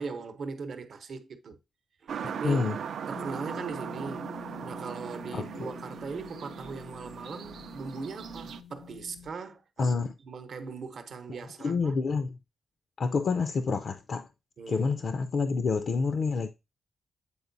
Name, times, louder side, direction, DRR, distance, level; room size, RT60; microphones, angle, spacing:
voice 1, 0.0-1.6 2.0-2.6 3.1-4.3 4.6-11.9 14.6-14.9, right 4 dB, 55° right, 0.8 m, -39 dB
sound 1, 2.1-8.6, right 7 dB, 75° right, 0.4 m, -39 dB
voice 2, 2.2-2.8 5.3-5.7 9.8-10.1 11.6-12.4 13.0-14.3 14.7-16.5, left 4 dB, 50° left, 0.4 m, -28 dB
sound 2, 3.1-9.3, left 8 dB, 80° left, 0.8 m, -47 dB
8.2 x 4.4 x 2.6 m
wide cardioid pair, 145°, 0 cm